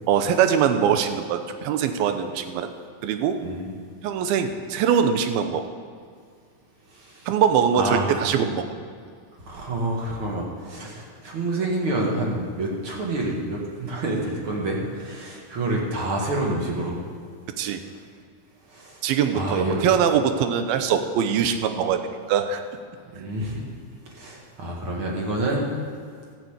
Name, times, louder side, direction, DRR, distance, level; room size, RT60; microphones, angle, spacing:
voice 1, 0.1-2.7 3.0-3.4 4.0-5.6 7.3-8.7 17.6-17.8 19.0-22.0 22.3-22.6, right 8 dB, 90° right, 8 dB, 2.7 m, -22 dB
voice 2, 6.9-7.3 7.8-8.3 9.5-17.0 18.7-19.0 19.3-19.9 23.1-23.6 24.1-25.7, right 2 dB, 45° right, -2 dB, 2.1 m, -28 dB
13.5 x 7.2 x 8.1 m, 2.1 s
omnidirectional pair, 4.2 m